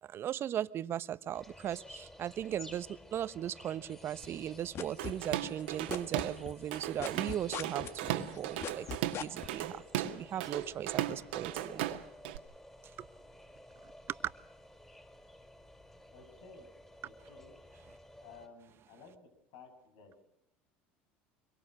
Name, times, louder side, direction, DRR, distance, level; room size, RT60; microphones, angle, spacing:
voice 1, 0.0-12.0 13.0-13.1 14.1-14.3, right 10 dB, 45° right, 15 dB, 1.0 m, -38 dB
sound 1, 1.3-18.5, left 1 dB, 10° left, 5.2 m, -54 dB
sound 2, 4.2-5.6 5.9-9.5, left 8 dB, 50° left, 1.9 m, -40 dB
Drum kit / Drum, 5.0-6.4 6.7-12.4, right 13 dB, 80° right, 1.7 m, -36 dB
voice 2, 16.1-16.7 17.0-17.5 18.2-20.2, left 4 dB, 70° left, 6 dB, 7.3 m, -55 dB
25.5 x 23.0 x 6.4 m, 0.83 s
hypercardioid pair, 80°, 6 cm